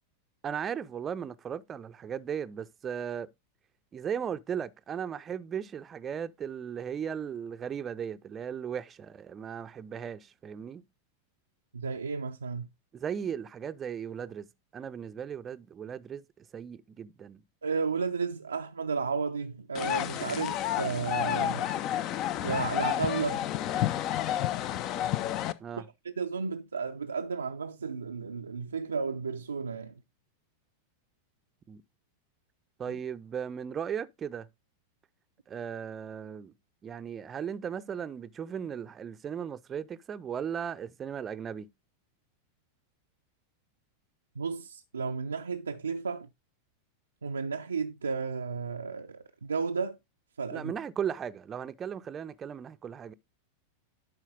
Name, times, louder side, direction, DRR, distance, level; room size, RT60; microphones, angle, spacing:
voice 1, 0.4-3.3 3.9-10.8 12.9-14.5 14.7-17.4 25.6-25.9 31.7-31.8 32.8-34.5 35.5-36.5 36.8-41.7 50.5-53.1, right 8 dB, 25° right, 0.5 m, -37 dB
voice 2, 11.7-12.7 17.6-21.7 22.4-23.4 25.8-29.9 32.9-33.0 44.4-46.3 47.2-50.0 50.4-50.7, right 5 dB, 75° right, 0.4 m, -33 dB
sound 1, 19.7-25.5, left 12 dB, 35° left, 0.5 m, -30 dB
11.5 x 4.5 x 3.6 m
figure-of-eight pair, 90°, 0 cm